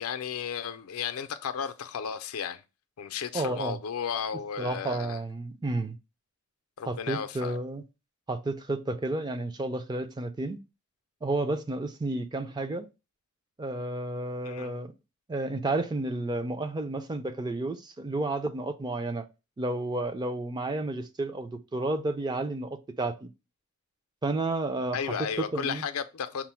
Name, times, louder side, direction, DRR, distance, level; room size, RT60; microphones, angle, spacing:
voice 1, 0.0-2.6 3.0-5.2 6.8-7.6 14.4-14.8 24.9-26.5, left 7 dB, 90° left, 0.4 m, -34 dB
voice 2, 3.3-3.8 4.6-6.0 6.9-7.8 8.3-10.6 11.2-12.9 13.6-14.9 15.3-19.3 19.6-23.3 24.2-25.8, right 2 dB, 20° right, 0.4 m, -31 dB
5.9 x 2.0 x 4.3 m
head